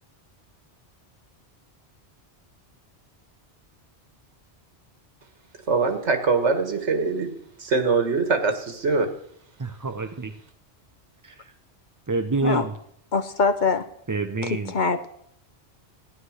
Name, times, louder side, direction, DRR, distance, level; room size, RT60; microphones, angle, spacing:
voice 1, 5.7-7.3 7.6-9.2, right 4 dB, 85° right, 7 dB, 1.8 m, -23 dB
voice 2, 9.6-10.3 11.2-11.3 12.1-12.7 14.1-14.7, right 3 dB, 25° right, 8 dB, 0.5 m, -27 dB
voice 3, 13.1-13.8 14.4-15.1, left 4 dB, 45° left, 9 dB, 1.0 m, -23 dB
14.5 x 9.7 x 6.4 m, 0.69 s
omnidirectional pair, 1.2 m